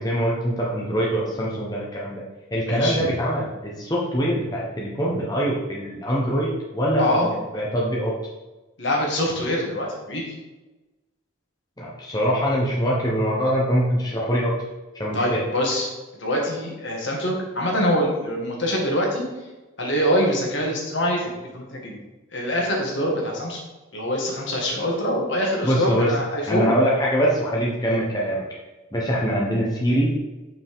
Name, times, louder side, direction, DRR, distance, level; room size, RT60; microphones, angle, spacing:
voice 1, 0.0-2.2 2.5-8.1 11.8-14.5 14.9-15.4 25.6-26.1 26.5-28.4 28.9-30.1, equal, 20° left, -5 dB, 1.1 m, -23 dB
voice 2, 2.7-3.0 7.0-7.3 8.8-10.3 15.1-15.9 16.2-19.3 19.8-22.0 22.3-23.6 23.9-26.7, equal, 60° left, -1 dB, 1.9 m, -24 dB
7.3 x 5.7 x 3.7 m, 1.1 s
head